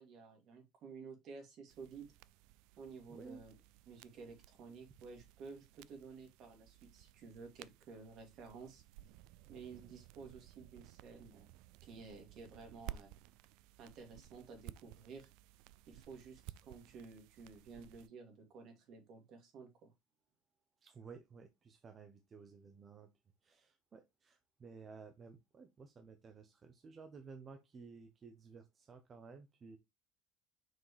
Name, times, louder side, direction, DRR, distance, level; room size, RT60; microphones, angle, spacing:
voice 1, 0.0-2.1 2.8-3.5 3.9-8.8 9.5-11.5 11.8-13.1 13.8-15.3 15.9-19.9, right 5 dB, 55° right, 2.8 m, -53 dB
sound 1, 1.7-18.1, right 15 dB, 80° right, 0.3 m, -56 dB
voice 2, 3.1-3.4 9.7-9.9 20.8-23.1 23.4-29.8, right 5 dB, 30° right, 0.9 m, -55 dB
6.2 x 4.9 x 3.3 m
cardioid pair, 125°, 0 cm